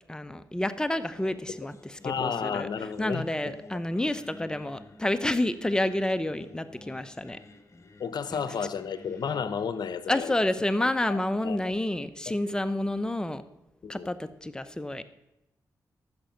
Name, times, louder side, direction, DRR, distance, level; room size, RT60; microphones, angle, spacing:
voice 1, 0.1-7.4 8.3-8.5 10.1-13.4 13.9-15.0, left 1 dB, 10° left, 11 dB, 0.8 m, -29 dB
Singing, 1.0-12.1, left 2 dB, 40° left, 1.2 m, -52 dB
voice 2, 2.0-3.2 8.0-10.3 10.8-11.6 13.8-14.1, left 6 dB, 70° left, 13 dB, 0.9 m, -32 dB
14.0 x 6.3 x 5.8 m, 0.91 s
cardioid pair, 60°, 7 cm